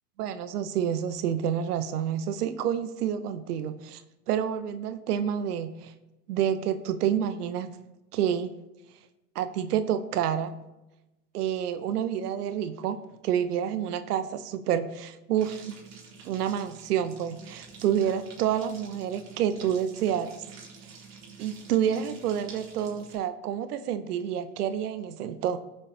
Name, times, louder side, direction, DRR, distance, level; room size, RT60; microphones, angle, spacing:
voice 1, 0.2-4.0 4.3-5.9 6.3-7.8 8.1-8.5 9.3-10.6 11.3-13.0 13.2-15.8 16.2-20.4 21.4-25.6, right 9 dB, 70° right, 11 dB, 0.9 m, -28 dB
sound 1, 15.4-23.2, right 5 dB, 35° right, 3.5 m, -48 dB
18.0 x 6.9 x 2.9 m, 0.98 s
hypercardioid pair, 105°, 48 cm